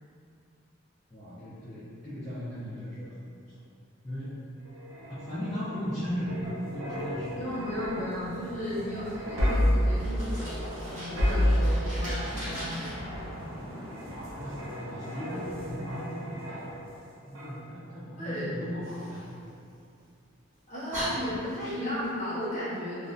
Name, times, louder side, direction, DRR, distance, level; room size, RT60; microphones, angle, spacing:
voice 1, 1.1-3.5 4.0-4.4 5.1-7.6 14.0-19.3 21.1-21.4, equal, 20° left, -16 dB, 0.5 m, -37 dB
sound 1, 4.7-17.0 17.3-17.6, equal, 70° right, 0.6 m, -31 dB
voice 2, 7.4-13.7 18.2-18.5 20.7-23.1, equal, 35° left, -11 dB, 0.8 m, -35 dB
Fire, 9.9-12.9 18.8-20.1 20.5-20.6 20.9-22.1, equal, 35° right, 0.8 m, -40 dB
2.3 x 2.2 x 2.5 m, 2.4 s
head